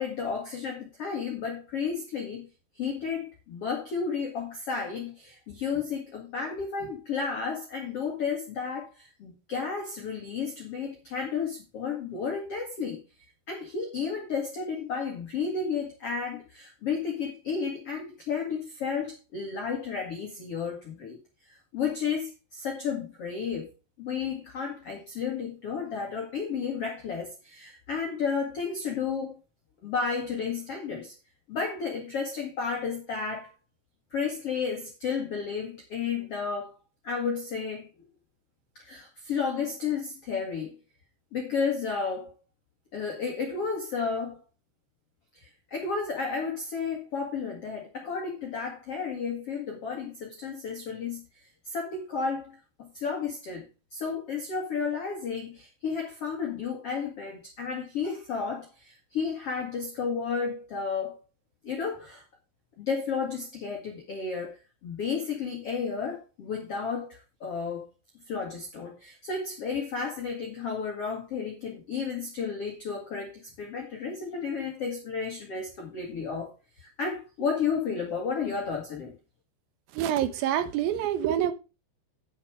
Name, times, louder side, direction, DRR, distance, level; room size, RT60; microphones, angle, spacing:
voice 1, 0.0-2.5 2.7-13.0 13.5-21.2 21.5-23.7 24.0-29.4 29.8-31.1 31.5-33.5 34.1-36.7 37.0-37.9 38.8-40.8 41.3-42.3 42.9-44.4 45.4-53.6 53.9-61.2 61.6-62.2 62.8-67.9 68.3-76.5 76.8-79.1, left 5 dB, 50° left, 1.9 m, -32 dB
voice 2, 79.9-81.5, right 10 dB, 75° right, 2.3 m, -26 dB
10.0 x 7.2 x 4.8 m
omnidirectional pair, 5.3 m